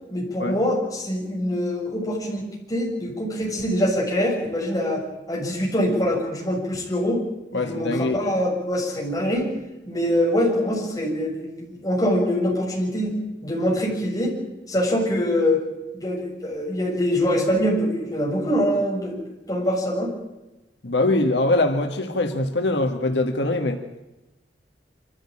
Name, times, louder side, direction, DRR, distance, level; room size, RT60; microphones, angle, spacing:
voice 1, 0.1-2.4 2.7-7.2 7.5-9.5 9.9-14.4 14.7-15.6 15.9-20.1, equal, 20° left, -3 dB, 7.0 m, -24 dB
voice 2, 7.5-8.2 20.8-23.8, left 2 dB, 80° left, 4 dB, 1.7 m, -23 dB
25.5 x 14.5 x 8.7 m, 1.0 s
head